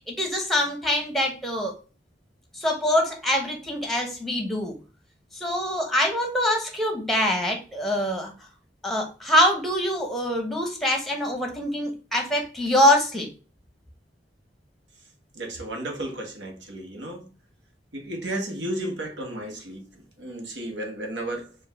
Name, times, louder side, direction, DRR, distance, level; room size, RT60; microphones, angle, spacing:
voice 1, 0.1-1.8 2.5-4.8 5.3-8.3 8.8-13.3, left 1 dB, ahead, 2 dB, 0.9 m, -24 dB
voice 2, 15.3-17.3 17.9-21.6, right 1 dB, 85° right, 3 dB, 1.2 m, -33 dB
4.7 x 2.5 x 3.4 m, 0.34 s
head